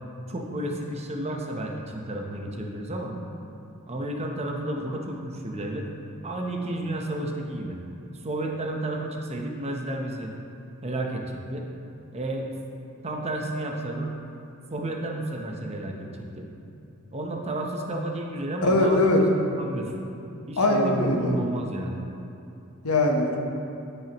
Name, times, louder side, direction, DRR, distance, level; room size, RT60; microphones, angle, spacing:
voice 1, 0.3-3.2 3.9-5.9 6.2-7.8 8.2-10.3 10.8-11.7 12.1-12.5 13.0-14.2 14.7-16.5 17.1-19.0 19.6-20.1 20.5-22.0, right 1 dB, 30° right, 1 dB, 0.8 m, -31 dB
voice 2, 18.6-19.2 20.6-21.3 22.8-23.4, left 1 dB, 90° left, 1 dB, 1.0 m, -21 dB
12.5 x 5.7 x 3.0 m, 2.8 s
head